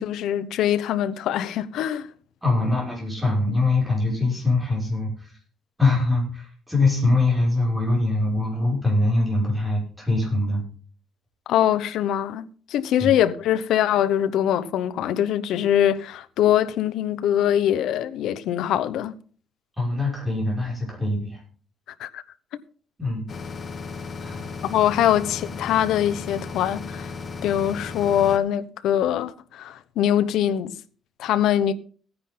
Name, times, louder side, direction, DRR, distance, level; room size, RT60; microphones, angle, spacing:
voice 1, 0.0-2.1 11.5-12.4 12.7-19.2 22.0-22.2 24.6-27.1 27.4-30.8 31.2-31.7, left 10 dB, 75° left, 0.9 m, -23 dB
voice 2, 2.4-5.4 5.8-10.6 13.0-13.1 19.8-21.4 23.0-23.2 24.2-24.5, left 2 dB, 5° right, 5.9 m, -23 dB
sound 1, 23.3-28.4, left 4 dB, 30° left, 1.2 m, -35 dB
16.5 x 9.9 x 3.8 m
cardioid pair, 175°, 0 cm